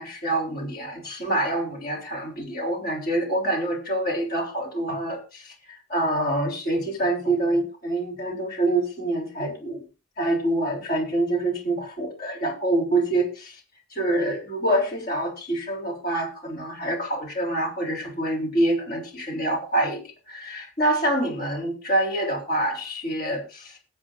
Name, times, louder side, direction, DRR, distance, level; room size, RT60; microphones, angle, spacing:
voice 1, 0.0-9.8 10.2-13.6 13.9-23.8, right 1 dB, 55° left, 1 dB, 3.7 m, -26 dB
19.0 x 8.0 x 2.6 m, 0.31 s
head